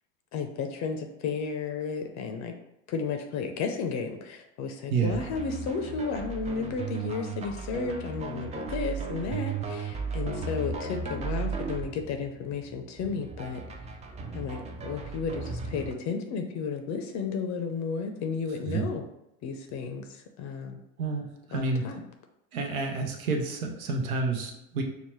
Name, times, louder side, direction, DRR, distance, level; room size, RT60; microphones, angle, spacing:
voice 1, 0.3-2.5 2.9-13.6 14.3-19.0 19.4-20.8 21.5-22.0, left 5 dB, 45° left, 5 dB, 0.5 m, -33 dB
sound 1, 5.1-15.9, right 4 dB, 20° right, 0.3 m, -36 dB
voice 2, 21.0-21.8 22.5-24.8, right 4 dB, 90° right, 2 dB, 0.8 m, -29 dB
5.5 x 2.0 x 3.0 m, 0.85 s
hypercardioid pair, 85°, 41 cm